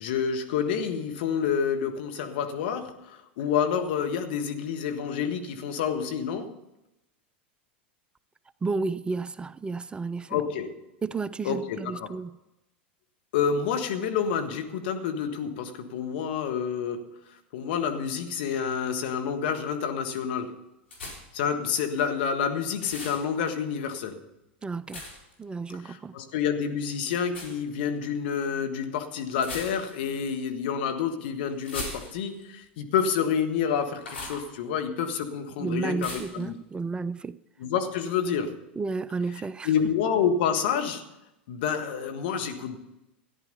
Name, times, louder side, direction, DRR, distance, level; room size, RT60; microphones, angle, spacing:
voice 1, 0.0-6.5 10.3-10.7 11.4-12.1 13.3-17.1 17.5-20.5 21.3-24.2 25.8-36.6 37.6-38.5 39.6-41.0 41.5-42.8, left 7 dB, 65° left, 1.7 m, -28 dB
voice 2, 8.6-10.4 11.0-12.4 24.6-25.1 25.4-26.2 35.6-37.4 38.8-39.7, right 4 dB, 15° right, 0.4 m, -32 dB
sound 1, 20.9-21.4 22.8-23.2 24.9-25.3 27.3-27.6 29.4-30.1 31.6-32.4 34.0-34.5 36.0-36.4, left 2 dB, 80° left, 3.9 m, -38 dB
14.0 x 10.5 x 5.4 m
hypercardioid pair, 95°, 6 cm